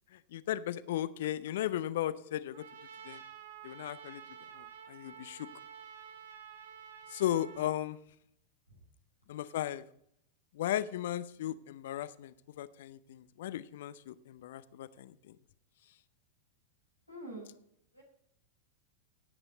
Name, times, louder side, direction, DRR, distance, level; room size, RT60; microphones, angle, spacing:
voice 1, 0.1-2.6 3.0-3.2 3.6-4.2 4.6-5.5 7.1-8.0 9.3-9.8 10.5-15.1, left 12 dB, 55° left, 16 dB, 0.7 m, -36 dB
Trumpet, 2.5-7.8, right 7 dB, 60° right, 1.5 m, -50 dB
voice 2, 17.1-17.6 17.9-18.0, right 1 dB, 90° right, -1 dB, 6.1 m, -46 dB
17.0 x 9.0 x 4.1 m, 0.69 s
figure-of-eight pair, 90°, 0 cm